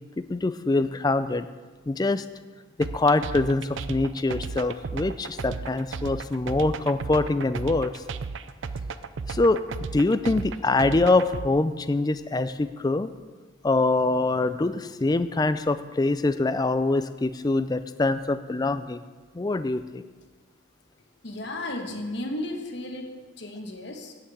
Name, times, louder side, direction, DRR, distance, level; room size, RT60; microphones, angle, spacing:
voice 1, 0.3-1.5 1.9-2.2 2.8-8.0 9.3-9.6 9.9-13.1 13.6-19.0 19.3-20.0, left 2 dB, 20° left, 12 dB, 0.3 m, -24 dB
sound 1, 2.8-11.5, right 4 dB, 65° right, 0.4 m, -34 dB
voice 2, 20.9-24.1, left 1 dB, 55° left, 3 dB, 1.3 m, -34 dB
9.9 x 5.9 x 7.8 m, 1.4 s
head